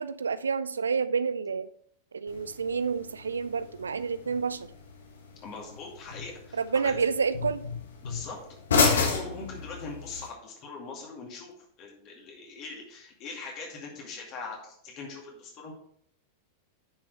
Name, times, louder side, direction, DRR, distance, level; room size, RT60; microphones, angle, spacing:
voice 1, 0.0-1.7 2.1-4.7 6.5-7.7, right 5 dB, 70° right, 0.4 m, -29 dB
sound 1, 2.3-10.3, left 4 dB, 65° left, 1.4 m, -32 dB
voice 2, 5.4-7.0 8.0-8.4 8.9-11.5 11.8-15.7, left 4 dB, 40° left, 2.3 m, -41 dB
9.8 x 6.0 x 3.4 m
figure-of-eight pair, 90°, 0 cm